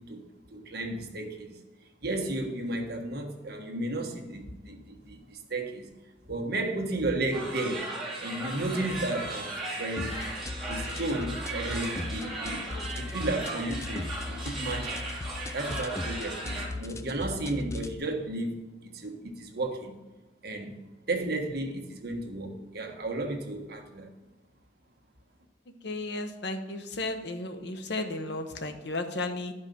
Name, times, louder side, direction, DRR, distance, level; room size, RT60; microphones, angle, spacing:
voice 1, 0.5-1.5 2.0-5.9 6.3-7.9 8.2-10.2 10.7-12.6 13.0-15.1 15.5-18.5 18.8-19.9 20.4-20.7 21.1-24.1, right 2 dB, 55° right, 2 dB, 1.5 m, -33 dB
sound 1, 7.3-16.7, right 2 dB, ahead, 2.7 m, -37 dB
sound 2, 10.0-18.0, left 2 dB, 15° left, 0.3 m, -38 dB
voice 2, 25.8-29.5, left 2 dB, 60° left, 7 dB, 1.0 m, -34 dB
11.5 x 5.4 x 5.3 m, 1.1 s
head